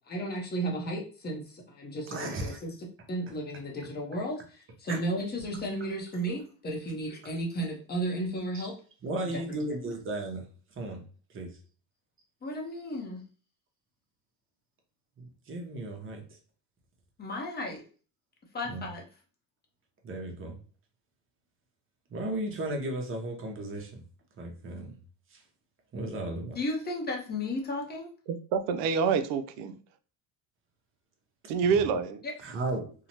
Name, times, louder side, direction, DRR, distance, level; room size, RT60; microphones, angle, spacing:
voice 1, 0.1-2.7 3.1-8.8 9.5-9.6 12.4-13.2 17.2-17.8 18.5-19.0 26.5-28.1 32.2-32.3, equal, 20° left, 0 dB, 0.6 m, -34 dB
voice 2, 2.1-2.6 4.9-5.0 7.2-7.3 8.5-8.6 9.0-10.5 10.7-11.0 11.3-11.6 15.2-16.4 18.6-18.9 20.0-20.6 22.1-24.0 24.4-25.0 25.3-25.4 25.9-26.6 32.4-32.9, right 2 dB, 25° right, 2 dB, 0.7 m, -35 dB
voice 3, 28.3-29.8 31.5-32.2, right 6 dB, 65° right, 9 dB, 0.5 m, -27 dB
2.7 x 2.1 x 2.8 m, 0.40 s
cardioid pair, 115°, 48 cm